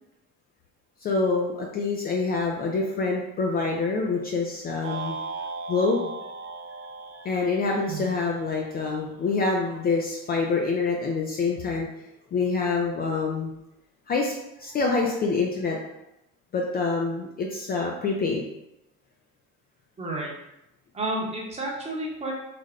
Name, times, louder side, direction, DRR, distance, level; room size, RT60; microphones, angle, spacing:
voice 1, 1.0-5.2 5.7-6.1 7.2-11.9 12.3-13.5 14.1-14.3 14.6-15.8 16.5-18.4, left 4 dB, 30° left, 0 dB, 0.4 m, -26 dB
sound 1, 4.8-9.1, right 3 dB, 55° right, 0.7 m, -37 dB
voice 2, 20.0-20.3 20.9-22.3, right 2 dB, 20° right, -2 dB, 0.9 m, -31 dB
3.3 x 2.1 x 3.6 m, 0.86 s
cardioid pair, 130°, 30 cm